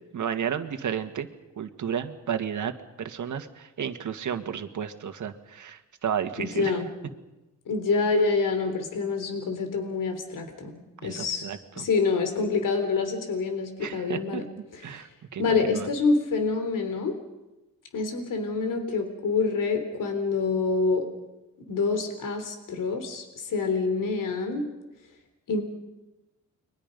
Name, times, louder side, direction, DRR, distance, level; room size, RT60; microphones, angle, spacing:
voice 1, 0.1-1.3 1.6-2.7 3.0-6.8 11.0-11.9 13.8-14.4 14.8-15.9, right 8 dB, 65° right, 8 dB, 1.9 m, -32 dB
voice 2, 6.4-6.9 7.7-10.7 11.0-11.4 11.8-14.4 14.7-15.1 15.4-17.2 17.9-21.1 21.7-24.7 25.5-25.6, left 4 dB, 70° left, 7 dB, 3.7 m, -26 dB
30.0 x 23.0 x 5.4 m, 1.0 s
cardioid pair, 70°, 33 cm